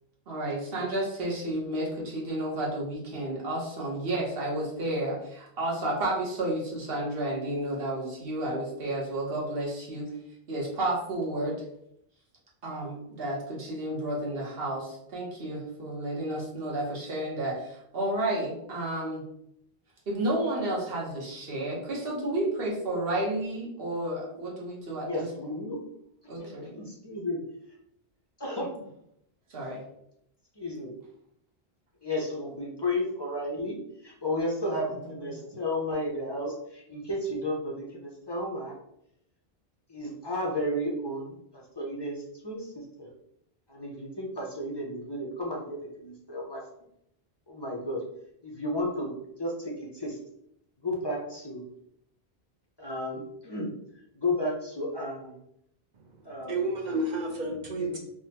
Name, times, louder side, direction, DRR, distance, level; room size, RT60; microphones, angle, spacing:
voice 1, 0.3-10.1 10.5-11.5 12.6-19.2 20.1-25.3 26.3-26.7 29.5-29.8, right 1 dB, 70° right, -4 dB, 1.2 m, -31 dB
voice 2, 25.0-25.8 26.4-27.4 28.4-28.7 30.6-30.9 32.0-38.8 39.9-43.1 43.7-46.6 47.5-48.0 48.4-50.2 50.8-51.7 52.8-55.4 56.2-56.6 57.8-58.0, left 1 dB, 35° left, -2 dB, 0.4 m, -33 dB
voice 3, 55.9-58.0, right 2 dB, 50° right, 0 dB, 0.6 m, -31 dB
3.4 x 2.2 x 2.8 m, 0.75 s
omnidirectional pair, 1.0 m